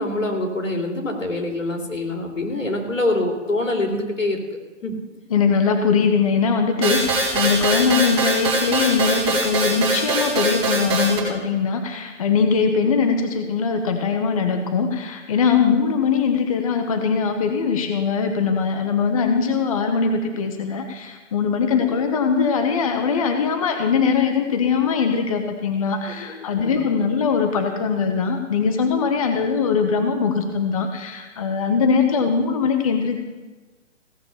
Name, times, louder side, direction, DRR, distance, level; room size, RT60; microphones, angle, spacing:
voice 1, 0.0-4.4 4.8-4.9 21.8-22.0 26.0-26.9, left 2 dB, 85° left, 3 dB, 3.2 m, -25 dB
voice 2, 5.3-33.2, left 5 dB, 30° left, 6 dB, 0.9 m, -21 dB
sound 1, 6.8-11.2, right 2 dB, 15° right, 3.9 m, -22 dB
16.5 x 6.5 x 7.1 m, 1.2 s
hypercardioid pair, 155°, 37 cm